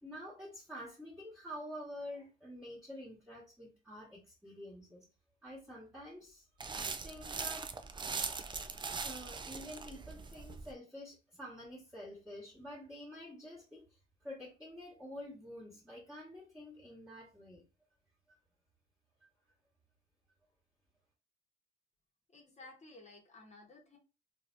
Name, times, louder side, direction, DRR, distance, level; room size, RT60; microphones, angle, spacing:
voice 1, 0.0-5.1 5.4-6.4 7.0-7.7 9.0-17.6 18.3-18.4, equal, 5° right, -7 dB, 1.5 m, -48 dB
sound 1, 6.6-10.7, right 4 dB, 25° right, 0.4 m, -41 dB
voice 2, 22.3-24.0, left 2 dB, 35° left, 1 dB, 1.2 m, -55 dB
3.2 x 2.8 x 2.6 m, 0.30 s
cardioid pair, 90°, 20 cm